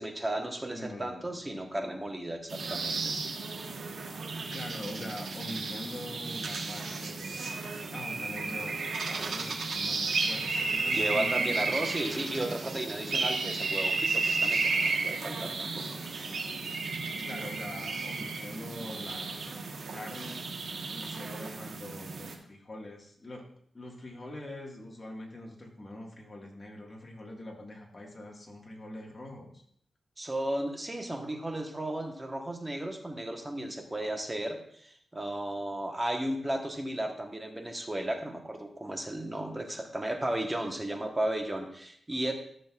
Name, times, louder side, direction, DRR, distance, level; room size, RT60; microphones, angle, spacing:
voice 1, 0.0-3.2 10.9-15.9 30.2-42.3, right 1 dB, 15° right, 3 dB, 1.2 m, -34 dB
voice 2, 0.7-1.4 4.5-8.8 9.1-11.7 17.2-19.6 19.9-20.6 20.9-23.4 23.7-29.6, left 1 dB, 30° left, 0 dB, 1.8 m, -44 dB
sound 1, 2.5-22.3, right 3 dB, 75° right, 1.3 m, -33 dB
14.0 x 6.3 x 2.4 m, 0.65 s
wide cardioid pair, 120°, 0 cm